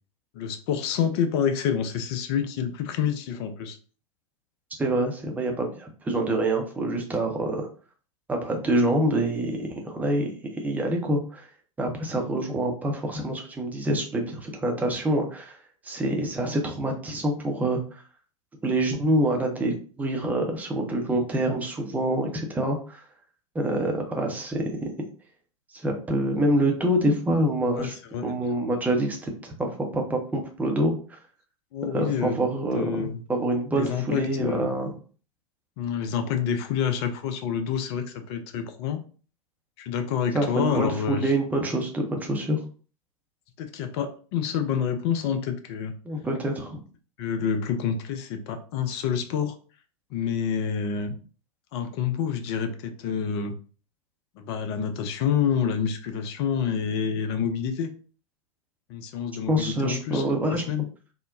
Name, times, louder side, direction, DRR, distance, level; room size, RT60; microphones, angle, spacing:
voice 1, 0.3-3.8 27.8-28.3 31.7-32.4 32.7-33.2 33.8-34.7 35.8-39.0 39.8-41.3 43.6-45.9 47.2-49.6 50.1-51.1 51.7-53.6 54.4-57.9 58.9-60.8, left 7 dB, 45° left, 8 dB, 0.5 m, -28 dB
voice 2, 4.8-7.7 8.3-11.5 11.8-15.6 15.8-17.8 18.6-23.0 23.5-24.9 25.7-28.0 28.2-31.2 31.9-35.0 40.3-42.6 46.0-46.8 59.5-60.6, right 1 dB, 10° right, 2 dB, 0.6 m, -26 dB
3.7 x 2.1 x 2.4 m, 0.40 s
figure-of-eight pair, 90°, 18 cm